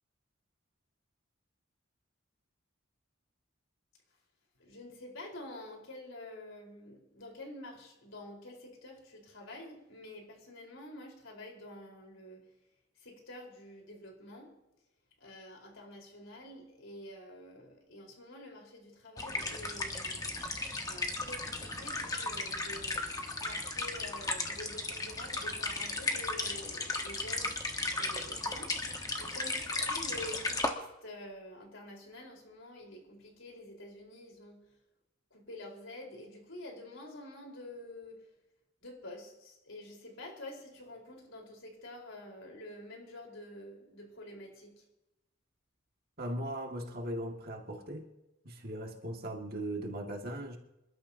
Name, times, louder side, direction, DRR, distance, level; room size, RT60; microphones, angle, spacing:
voice 1, 4.6-12.4 13.0-14.5 15.2-20.3 20.9-23.1 23.4-27.5 28.0-28.8 29.2-34.6 35.3-38.2 38.8-44.8, left 1 dB, 75° left, 0 dB, 4.6 m, -48 dB
sound 1, 19.2-30.7, left 2 dB, 20° left, 1.4 m, -35 dB
voice 2, 46.2-48.1 48.4-50.6, right 1 dB, 50° right, 2 dB, 2.1 m, -38 dB
26.5 x 12.5 x 2.9 m, 0.90 s
head